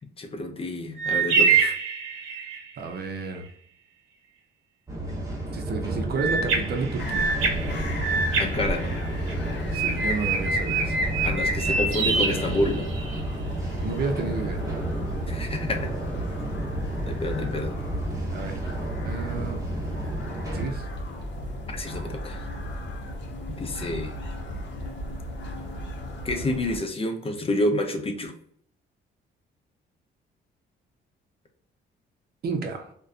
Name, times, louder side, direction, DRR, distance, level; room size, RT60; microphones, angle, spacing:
voice 1, 0.2-1.7 8.4-8.9 11.2-12.8 15.3-15.9 17.1-17.7 21.7-22.4 23.6-24.2 26.2-28.3, left 1 dB, 30° left, 5 dB, 0.6 m, -29 dB
sound 1, 1.0-2.7 6.2-9.3 9.7-13.2, right 5 dB, 90° right, 0.7 m, -25 dB
voice 2, 2.8-3.4 5.5-7.3 9.7-11.0 13.8-14.6 18.3-18.7 19.0-19.6 20.5-20.9 32.4-32.9, right 4 dB, 50° right, 5 dB, 0.6 m, -31 dB
sound 2, 4.9-20.7, right 1 dB, 15° right, 0.9 m, -32 dB
sound 3, 7.0-26.8, equal, 60° left, 0.7 m, -35 dB
2.4 x 2.2 x 2.4 m, 0.65 s
cardioid pair, 90°, 20 cm